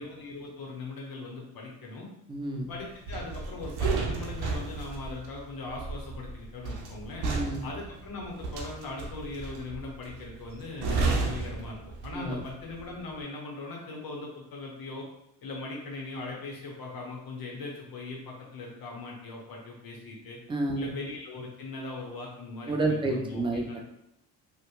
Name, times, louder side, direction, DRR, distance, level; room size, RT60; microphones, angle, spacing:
voice 1, 0.0-2.1 2.7-7.3 7.6-15.0 15.4-20.4 20.8-23.8, left 3 dB, 55° left, -2 dB, 1.0 m, -40 dB
voice 2, 2.3-2.7 7.2-7.6 12.1-12.5 20.5-20.9 22.7-23.8, right 2 dB, 15° right, 2 dB, 0.4 m, -30 dB
sound 1, 3.1-12.4 12.7-13.0, right 3 dB, 65° right, 0.7 m, -32 dB
2.8 x 2.2 x 2.4 m, 0.82 s
hypercardioid pair, 60°, 41 cm